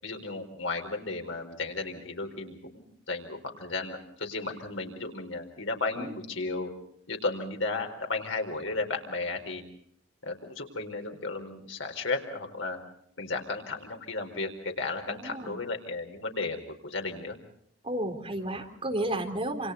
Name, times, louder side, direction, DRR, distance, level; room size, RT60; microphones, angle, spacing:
voice 1, 0.0-6.7 7.1-9.6 10.2-12.8 13.2-17.4, left 3 dB, 90° left, 4 dB, 4.5 m, -34 dB
voice 2, 15.1-15.6 17.8-19.7, right 1 dB, 30° right, 4 dB, 3.7 m, -32 dB
28.5 x 28.0 x 4.1 m, 0.68 s
head